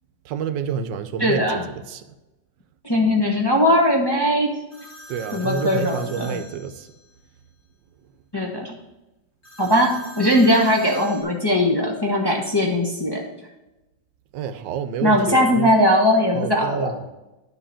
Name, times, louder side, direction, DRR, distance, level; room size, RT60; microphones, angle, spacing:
voice 1, 0.2-2.0 5.1-6.9 14.3-15.7 16.3-17.1, right 7 dB, 75° right, 1.3 m, -29 dB
voice 2, 1.2-1.6 2.8-4.6 5.3-6.4 8.3-8.7 9.6-13.2 15.0-16.9, left 1 dB, 15° left, 0.9 m, -19 dB
sound 1, 4.7-7.3 9.4-11.2, equal, 35° left, 2.6 m, -42 dB
10.0 x 3.9 x 7.0 m
omnidirectional pair, 2.1 m